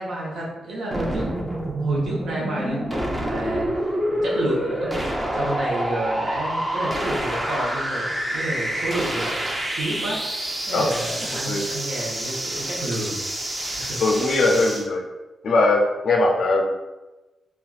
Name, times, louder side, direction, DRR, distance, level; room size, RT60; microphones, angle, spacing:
voice 1, 0.0-1.5 1.8-3.9 4.2-4.9 5.3-10.2 10.7-13.2 13.7-14.0, right 1 dB, 90° right, -5 dB, 0.8 m, -30 dB
sound 1, 0.9-14.9, right 1 dB, 25° right, 0.5 m, -27 dB
voice 2, 11.3-11.6 13.8-15.0 15.4-16.7, left 2 dB, 75° left, 1 dB, 0.3 m, -20 dB
3.4 x 2.3 x 2.4 m, 1.1 s
cardioid pair, 85°, 0 cm